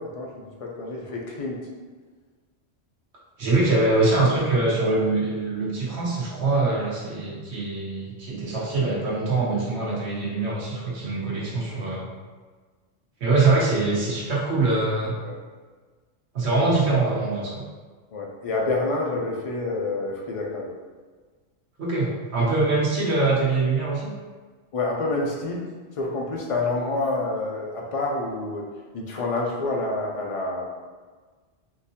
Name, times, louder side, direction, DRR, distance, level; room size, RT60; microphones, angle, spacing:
voice 1, 0.0-1.6 11.4-11.7 15.2-15.4 18.1-20.7 24.7-25.6 26.0-28.7 28.9-30.7, left 2 dB, 45° left, -2 dB, 0.4 m, -28 dB
voice 2, 3.4-12.1 13.2-15.1 16.3-17.6 21.8-24.1, right 3 dB, 65° right, -6 dB, 1.3 m, -23 dB
3.8 x 2.6 x 2.7 m, 1.4 s
omnidirectional pair, 1.2 m